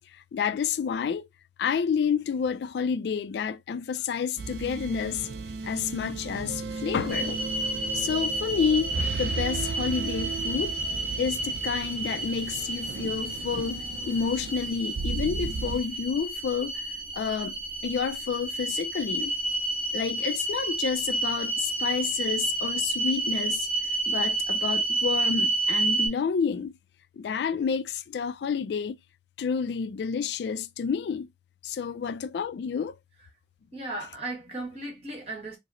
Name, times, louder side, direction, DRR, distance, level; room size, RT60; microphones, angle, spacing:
voice 1, 0.1-1.3 1.6-5.3 5.6-7.5 7.9-10.8 11.2-16.8 17.1-19.3 19.9-23.7 24.1-26.8 27.2-29.0 29.4-31.3 31.6-33.0, left 6 dB, 75° left, 0.3 m, -29 dB
sound 1, 4.4-15.8, right 4 dB, 70° right, 0.4 m, -35 dB
sound 2, 7.1-26.1, right 2 dB, 10° left, 0.9 m, -30 dB
voice 2, 33.7-35.6, right 2 dB, 35° right, 1.3 m, -36 dB
4.7 x 2.0 x 3.0 m
head